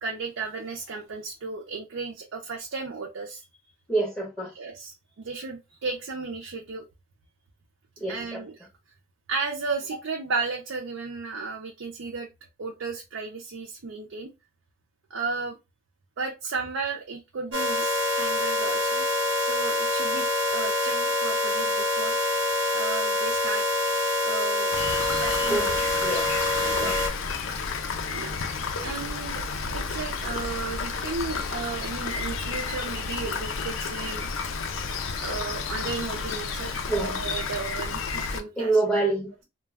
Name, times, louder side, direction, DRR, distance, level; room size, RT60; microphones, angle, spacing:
voice 1, 0.0-3.5 4.5-6.9 8.1-8.7 9.3-12.3 12.6-14.3 15.1-15.6 16.2-19.1 19.4-22.3 22.7-23.6 24.2-24.7 25.2-26.0 26.6-26.9 28.1-28.4 28.8-34.3 35.2-38.8, right 4 dB, 80° right, 0.5 m, -34 dB
voice 2, 3.9-4.5 8.0-8.4 25.4-25.7 26.0-26.2 26.6-26.9 36.9-37.2 38.6-39.4, right 2 dB, 5° left, 1.3 m, -26 dB
sound 1, 17.5-27.1, left 1 dB, 65° right, 1.1 m, -25 dB
Rain, 24.7-38.4, left 5 dB, 80° left, 0.5 m, -31 dB
2.2 x 2.2 x 3.4 m
head